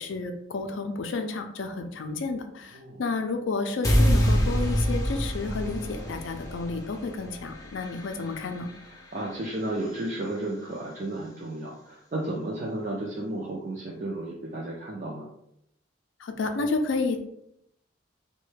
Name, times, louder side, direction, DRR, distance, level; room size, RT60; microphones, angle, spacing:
voice 1, 0.0-8.7 16.2-17.2, left 3 dB, 70° left, 6 dB, 0.4 m, -31 dB
sound 1, 3.8-10.0, equal, 20° left, 0.5 m, -27 dB
voice 2, 8.8-15.3, right 1 dB, 40° right, -3 dB, 0.4 m, -33 dB
3.1 x 2.2 x 3.1 m, 0.77 s
head